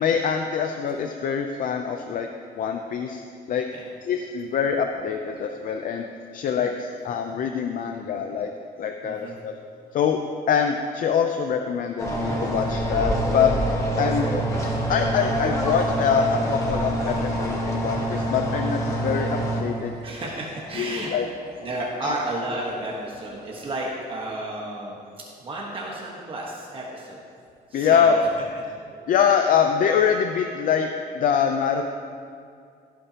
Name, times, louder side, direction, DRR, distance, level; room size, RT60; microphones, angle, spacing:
voice 1, 0.0-2.3 2.6-3.2 3.5-3.7 4.0-6.1 6.3-8.5 8.8-9.6 9.9-10.2 10.5-14.3 14.9-19.9 20.7-21.2 22.0-22.2 27.7-28.2 29.1-30.9 31.1-31.9, left 7 dB, 55° left, 5 dB, 0.5 m, -24 dB
voice 2, 9.0-9.4 20.0-21.1 21.6-25.0 25.4-27.2 27.7-28.3 28.9-29.0, right 1 dB, 30° right, -3 dB, 1.2 m, -32 dB
sound 1, 12.0-19.6, right 1 dB, 20° left, 1.4 m, -26 dB
sound 2, 15.1-23.9, left 1 dB, 75° left, 2.9 m, -45 dB
16.0 x 8.7 x 2.9 m, 2.4 s
cardioid pair, 160°, 17 cm